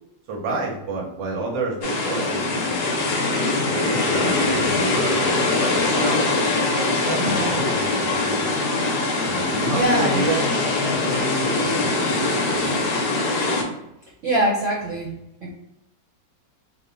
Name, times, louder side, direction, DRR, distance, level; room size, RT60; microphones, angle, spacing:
voice 1, 0.3-3.2 3.6-8.6 9.3-12.8, right 2 dB, 85° right, -1 dB, 1.5 m, -30 dB
sound 1, 1.8-13.6, left 2 dB, 65° left, 1.3 m, -22 dB
voice 2, 7.2-7.6 9.7-10.2 14.2-15.5, right 1 dB, 60° right, -4 dB, 0.8 m, -24 dB
3.6 x 2.1 x 3.8 m, 0.86 s
omnidirectional pair, 2.0 m